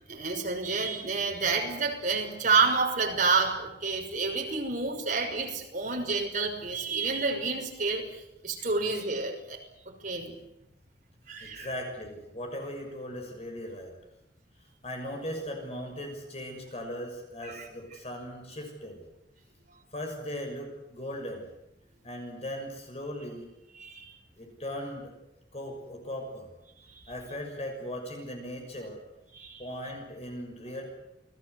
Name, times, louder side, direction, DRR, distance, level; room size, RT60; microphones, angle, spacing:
voice 1, 0.1-8.0 8.4-9.6 10.0-10.4 11.3-11.7 17.4-17.7 23.7-24.1 29.3-29.6, right 4 dB, 45° right, 2 dB, 6.2 m, -29 dB
voice 2, 11.4-13.9 14.8-19.0 19.9-21.5 22.0-23.5 24.4-25.1 25.5-26.5 27.1-29.0 29.6-30.8, equal, 35° left, 3 dB, 6.5 m, -38 dB
29.5 x 20.5 x 8.2 m, 0.90 s
head